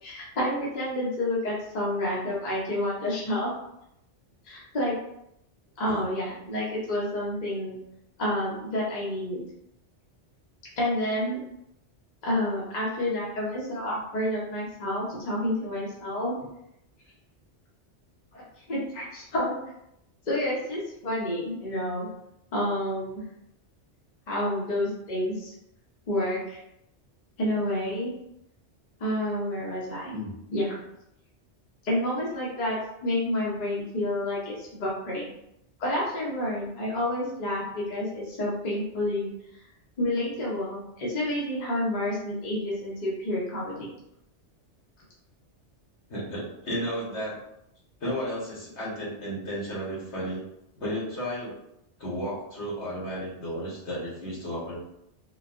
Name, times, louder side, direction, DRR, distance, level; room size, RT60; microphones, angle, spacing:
voice 1, 0.0-3.5 4.5-4.9 5.8-7.8 8.2-9.4 10.8-11.4 12.2-16.3 18.3-18.4 18.7-19.6 20.3-22.1 22.5-23.2 24.3-25.5 26.1-26.6 27.4-28.1 29.0-30.2 30.5-30.8 31.8-35.3 35.8-39.3 40.0-43.9, left 1 dB, 40° left, -6 dB, 0.9 m, -29 dB
voice 2, 46.1-47.4 48.0-50.4 50.8-51.5 52.0-54.8, equal, 75° left, -6 dB, 1.5 m, -33 dB
3.9 x 2.2 x 2.5 m, 0.79 s
omnidirectional pair, 1.2 m